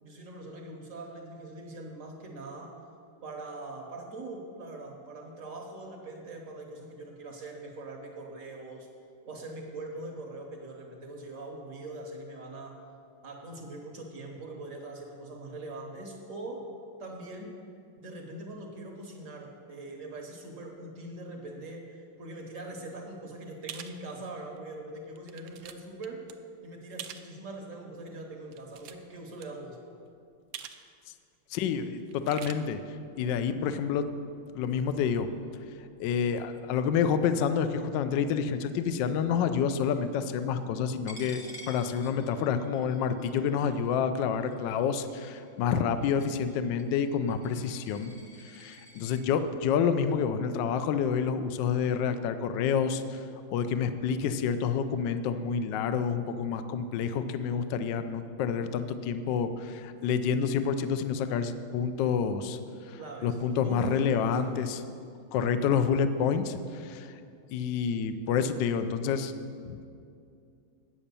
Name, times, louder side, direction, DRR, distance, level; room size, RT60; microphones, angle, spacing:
voice 1, 0.0-2.8 3.2-8.9 9.2-12.8 13.2-16.7 17.0-17.5 18.0-26.3 26.6-29.8 63.0-64.3, right 2 dB, 50° right, 1 dB, 1.0 m, -42 dB
sound 1, 23.7-24.0 24.6-24.7 25.2-25.7 26.0-26.3 27.0-27.3 28.4-29.2 29.4-29.5 30.5-30.8 31.1-31.2 32.1-32.5, right 10 dB, 80° right, 0.9 m, -43 dB
voice 2, 31.5-32.8 33.2-34.1 34.5-35.3 36.0-48.1 48.4-53.2 53.5-62.6 62.9-64.8 65.3-67.1 67.5-69.3 69.7-69.8, left 7 dB, 75° left, 10 dB, 1.1 m, -28 dB
Coin (dropping), 41.1-49.2, left 1 dB, 40° left, 1.0 m, -51 dB
8.7 x 7.1 x 6.8 m, 2.5 s
omnidirectional pair, 2.4 m